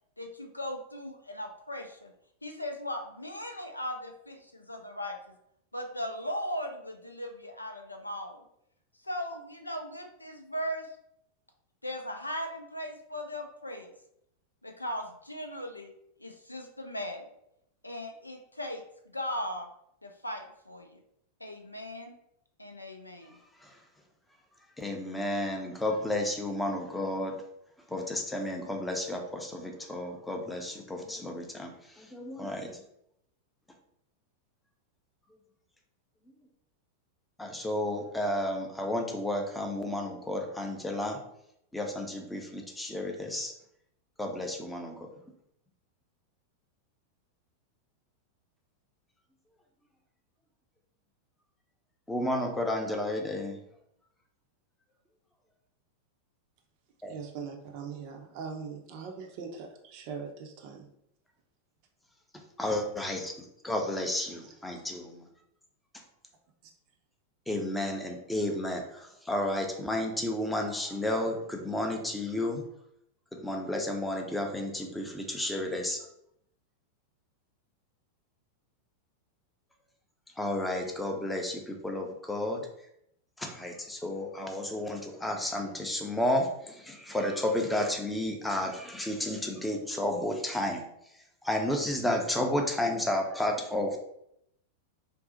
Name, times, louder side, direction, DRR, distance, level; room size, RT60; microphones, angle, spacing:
voice 1, 0.2-2.1 2.4-5.4 5.7-8.4 9.0-10.9 11.8-13.9 14.6-15.9 16.2-17.3 17.8-19.7 20.0-21.0 21.4-22.1 22.6-23.4, equal, 85° left, 4 dB, 0.4 m, -38 dB
voice 2, 24.8-27.3 27.9-31.7 32.0-32.8 37.4-41.2 41.7-43.5 44.2-44.9 52.1-53.6 57.0-57.1 62.6-63.3 63.6-65.3 67.5-72.6 73.3-76.0 80.4-82.6 83.4-90.8 91.4-94.0, left 1 dB, 5° left, 2 dB, 0.5 m, -32 dB
voice 3, 57.0-60.9 64.7-64.8, right 6 dB, 45° right, 3 dB, 0.5 m, -41 dB
2.6 x 2.0 x 3.8 m, 0.75 s
figure-of-eight pair, 90°, 0 cm